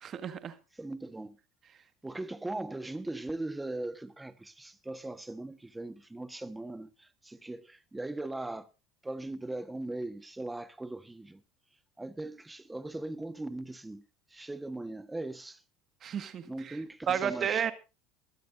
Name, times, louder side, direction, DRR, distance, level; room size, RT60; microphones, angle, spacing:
voice 1, 0.0-0.6 16.0-16.8 17.1-17.7, right 8 dB, 40° right, 1.8 m, -32 dB
voice 2, 0.8-1.4 2.0-8.7 9.0-11.4 12.0-14.0 14.3-15.6 16.4-17.7, right 2 dB, 10° right, 1.3 m, -39 dB
21.0 x 13.0 x 2.7 m
supercardioid pair, 105°, 0 cm